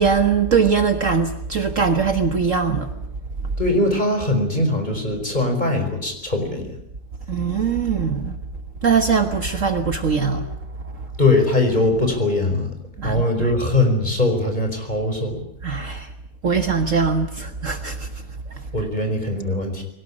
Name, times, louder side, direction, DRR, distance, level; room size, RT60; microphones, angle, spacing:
voice 1, 0.0-2.9 7.3-8.3 8.8-10.6 10.9-11.1 13.0-13.5 15.6-16.1 16.4-18.1 18.5-18.6, right 5 dB, 50° right, 7 dB, 1.7 m, -21 dB
voice 2, 3.6-6.7 11.2-12.7 13.0-15.4 18.7-19.8, left 2 dB, 25° left, 4 dB, 5.1 m, -21 dB
22.0 x 19.0 x 10.0 m, 0.77 s
omnidirectional pair, 1.8 m